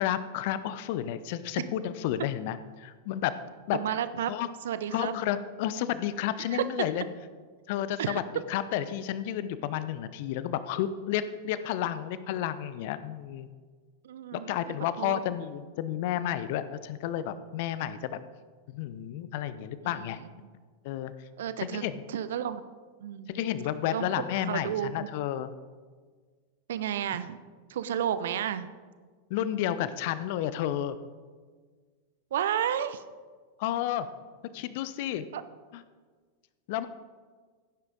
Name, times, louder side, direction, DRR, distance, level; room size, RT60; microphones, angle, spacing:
voice 1, 0.0-3.3 3.7-4.0 4.3-4.5 4.9-7.0 7.7-8.2 8.5-13.5 14.3-18.2 18.7-20.2 20.8-21.1 21.6-22.0 23.3-25.5 29.3-31.0 33.6-34.1 34.5-35.2 35.7-35.8 36.7-36.9, left 11 dB, 50° left, 14 dB, 0.7 m, -31 dB
voice 2, 3.7-4.3 4.6-5.1 6.5-6.6 8.0-8.4 14.0-14.5 15.0-15.2 19.8-20.1 20.4-20.5 21.4-22.6 23.0-23.4 23.9-24.1 24.4-25.1 26.7-27.4 27.7-28.7 32.3-33.0 35.3-35.4, right 10 dB, 60° right, 13 dB, 0.7 m, -32 dB
16.0 x 9.7 x 4.0 m, 1.5 s
figure-of-eight pair, 90°, 0 cm